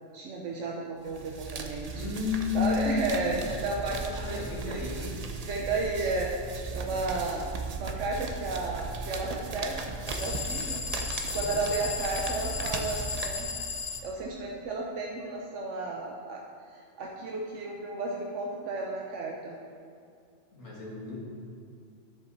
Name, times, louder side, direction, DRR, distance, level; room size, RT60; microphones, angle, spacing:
voice 1, 0.1-2.0 2.5-4.8 5.5-6.3 6.7-10.9 11.2-13.5 14.0-16.4 16.7-19.6, right 3 dB, 90° right, -1 dB, 1.2 m, -33 dB
sound 1, 1.1-13.9, right 4 dB, 40° right, 0.6 m, -37 dB
voice 2, 1.7-3.6 4.1-5.2 7.2-7.4 11.3-11.6 20.5-21.2, left 5 dB, 75° left, -6 dB, 2.2 m, -33 dB
sound 2, 10.1-14.1, left 6 dB, 60° left, 0.9 m, -35 dB
10.5 x 6.9 x 4.1 m, 2.4 s
omnidirectional pair, 1.2 m